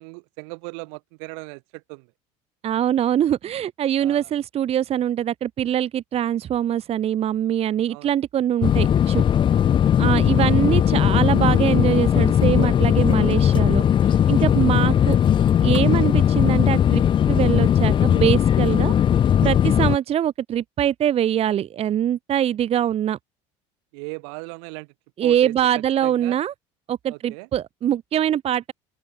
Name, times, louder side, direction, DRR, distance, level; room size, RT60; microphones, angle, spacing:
voice 1, 0.0-2.1 4.0-4.3 7.9-8.1 8.6-8.8 9.5-10.1 14.7-15.0 23.9-24.9 25.2-26.4 27.1-27.5, right 37 dB, 80° right, 4.4 m, -38 dB
voice 2, 2.6-9.2 10.0-15.2 15.6-18.9 19.4-23.2 25.2-26.5 26.9-28.7, right 10 dB, 40° right, 1.0 m, -23 dB
sound 1, 8.6-20.0, left 9 dB, 35° left, 0.5 m, -18 dB
open air
supercardioid pair, 100°, 15 cm